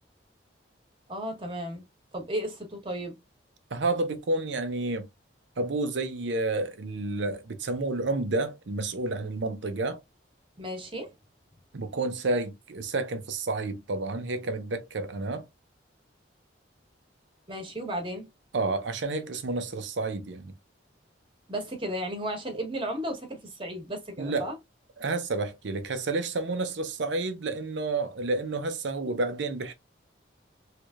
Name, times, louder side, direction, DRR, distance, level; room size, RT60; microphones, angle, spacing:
voice 1, 1.1-1.8 2.1-3.1 10.6-11.1 17.5-18.3 21.5-24.6, equal, 25° right, 1.1 m, -34 dB
voice 2, 3.7-5.1 5.6-10.0 11.7-15.5 18.5-20.5 24.2-24.5 25.0-29.7, right 2 dB, 75° right, 0.6 m, -30 dB
3.2 x 3.1 x 2.4 m
head